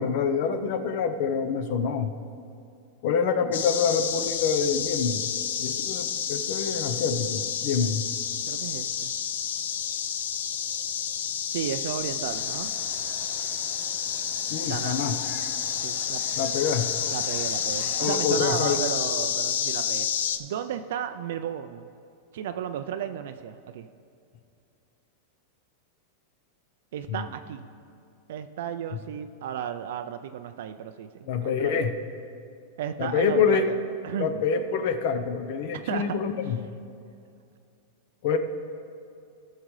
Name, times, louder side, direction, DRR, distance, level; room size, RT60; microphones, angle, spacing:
voice 1, 0.0-2.1 3.0-5.3 5.6-8.0 14.5-15.1 16.4-16.9 18.0-18.8 27.1-27.3 31.3-31.9 33.0-33.7 34.2-36.6 38.2-38.4, left 6 dB, 55° left, 8 dB, 0.7 m, -26 dB
sound 1, 3.5-20.4, left 8 dB, 90° left, 0.5 m, -29 dB
voice 2, 8.5-9.1 11.5-12.7 14.6-15.0 15.8-16.2 17.1-20.1 20.4-21.9 22.3-23.9 26.9-27.6 28.3-31.1 31.4-31.8 32.8-33.8 34.0-34.4 35.9-36.2, right 9 dB, 70° right, 8 dB, 0.4 m, -33 dB
sound 2, 12.2-18.1, equal, 5° left, 2.3 m, -46 dB
17.0 x 6.4 x 3.2 m, 2.5 s
supercardioid pair, 160°, 0 cm